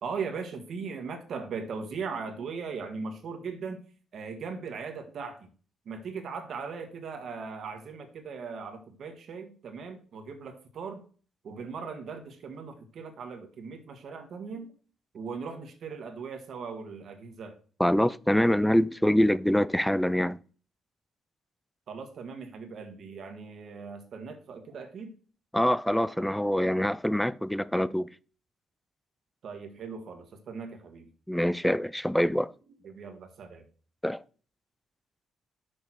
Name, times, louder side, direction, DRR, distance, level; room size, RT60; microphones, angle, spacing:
voice 1, 0.0-3.8 4.1-5.5 5.8-11.0 11.4-14.7 15.1-17.5 21.9-25.1 29.4-31.1 32.8-33.6, right 5 dB, 60° right, 1.6 m, -39 dB
voice 2, 17.8-20.4 25.5-28.1 31.3-32.5 34.0-34.2, equal, 5° left, 0.4 m, -25 dB
6.5 x 5.2 x 6.3 m
cardioid pair, 90°, 0 cm